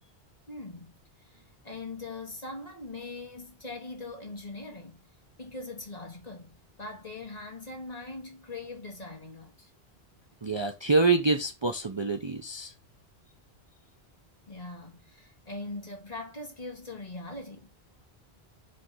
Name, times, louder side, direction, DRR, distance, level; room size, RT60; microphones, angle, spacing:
voice 1, 0.5-5.0 5.4-9.7 14.5-17.7, left 2 dB, 40° left, 1.8 m, -41 dB
voice 2, 10.4-12.7, right 3 dB, 30° right, 0.6 m, -26 dB
5.4 x 3.4 x 5.5 m
omnidirectional pair, 1.1 m